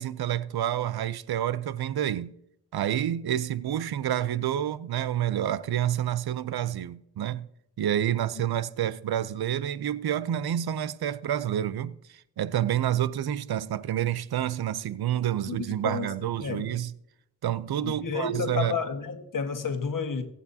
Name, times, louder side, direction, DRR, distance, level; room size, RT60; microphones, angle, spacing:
voice 1, 0.0-2.3 2.7-7.5 7.8-16.9 17.4-18.8, right 11 dB, 80° right, 0.6 m, -28 dB
voice 2, 15.5-16.1 16.4-16.7 17.8-20.2, left 5 dB, 60° left, 1.6 m, -31 dB
23.0 x 8.4 x 2.8 m
wide cardioid pair, 90°, 37 cm